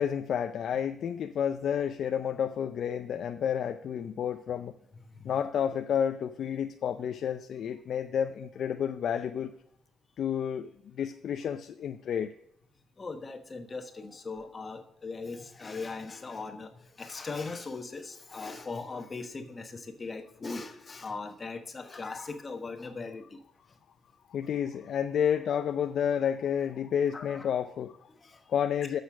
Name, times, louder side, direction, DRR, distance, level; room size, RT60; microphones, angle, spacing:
voice 1, 0.0-4.7 5.2-9.5 10.2-12.3 24.3-28.1 28.5-29.0, left 8 dB, 65° left, 8 dB, 0.5 m, -30 dB
voice 2, 13.0-23.4 27.1-27.5 28.2-28.4, left 4 dB, 30° left, 7 dB, 1.1 m, -39 dB
8.2 x 6.5 x 6.0 m, 0.75 s
cardioid pair, 90°, 0 cm